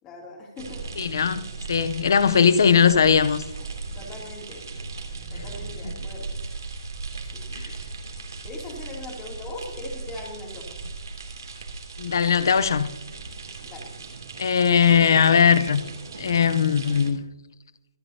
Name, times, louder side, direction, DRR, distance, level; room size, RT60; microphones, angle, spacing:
voice 1, 0.0-0.8 4.0-4.7 5.3-6.3 7.3-7.7 8.4-10.7 13.6-13.9, left 2 dB, 15° left, 2.9 m, -40 dB
sound 1, 0.6-17.1, right 3 dB, 70° right, 3.0 m, -37 dB
voice 2, 1.0-1.4 1.7-3.4 7.5-7.7 12.0-12.9 14.4-15.8 16.2-17.2, left 7 dB, 60° left, 0.7 m, -19 dB
25.5 x 8.6 x 2.8 m
hypercardioid pair, 165°, 2 cm